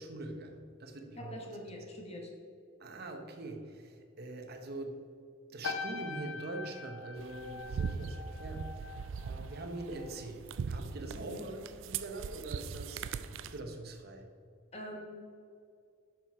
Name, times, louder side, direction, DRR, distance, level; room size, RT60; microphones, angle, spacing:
voice 1, 0.0-1.3 2.8-5.0 5.5-10.4 10.7-13.1 13.4-14.2, right 2 dB, 50° right, 4 dB, 0.9 m, -43 dB
voice 2, 1.2-2.3 11.1-11.4 14.7-15.5, left 1 dB, 30° left, 0 dB, 1.3 m, -44 dB
sound 1, 5.6-10.3 10.5-10.9, left 4 dB, 65° left, 0.6 m, -43 dB
sound 2, 7.2-13.6, right 6 dB, 65° right, 0.3 m, -40 dB
6.9 x 5.8 x 4.7 m, 2.3 s
head